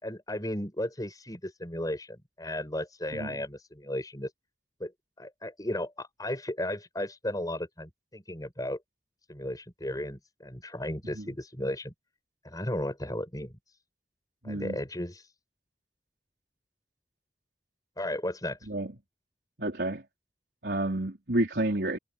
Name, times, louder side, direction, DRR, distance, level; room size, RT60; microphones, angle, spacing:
voice 1, 0.0-4.3 4.8-4.9 5.2-8.8 9.3-11.9 12.4-13.5 14.4-15.2 18.0-18.6, left 1 dB, 20° left, 6.5 m, -35 dB
voice 2, 14.4-14.8 18.7-18.9 19.6-20.0 20.6-22.0, right 1 dB, 70° right, 4.5 m, -30 dB
head